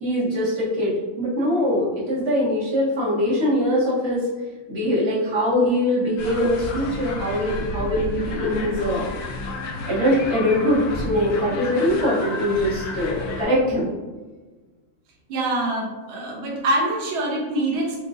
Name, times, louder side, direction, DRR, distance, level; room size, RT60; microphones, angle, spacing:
voice 1, 0.0-4.2 4.7-9.1 9.9-13.9, equal, 45° right, -10 dB, 1.8 m, -22 dB
sound 1, 6.2-13.4, left 3 dB, 85° left, 0.8 m, -31 dB
voice 2, 15.3-18.0, right 1 dB, 75° right, -2 dB, 1.5 m, -24 dB
4.9 x 2.8 x 2.4 m, 1.3 s
omnidirectional pair, 2.3 m